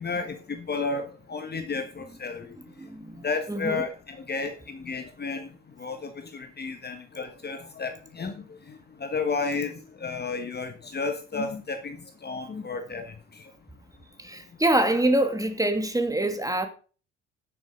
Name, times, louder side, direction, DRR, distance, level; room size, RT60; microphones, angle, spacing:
voice 1, 0.0-2.5 3.2-5.5 5.8-8.4 8.7-12.0 12.2-13.1, left 4 dB, 25° left, 1.4 m, -32 dB
voice 2, 2.8-3.8 14.2-16.7, right 1 dB, 10° right, 2.4 m, -25 dB
10.5 x 7.2 x 5.1 m
figure-of-eight pair, 55°, 36 cm